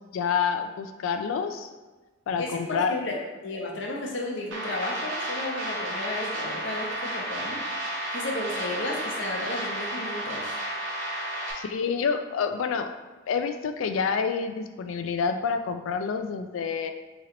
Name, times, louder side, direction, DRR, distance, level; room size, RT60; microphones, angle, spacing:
voice 1, 0.1-1.7 2.3-2.9 11.5-12.9 13.3-16.9, left 6 dB, 85° left, 8 dB, 0.3 m, -28 dB
voice 2, 2.4-3.2 3.4-7.6 8.1-10.6, left 2 dB, 65° left, -1 dB, 0.7 m, -33 dB
sound 1, 4.5-11.5, right 1 dB, 75° right, 1.0 m, -32 dB
3.1 x 2.9 x 3.7 m, 1.3 s
head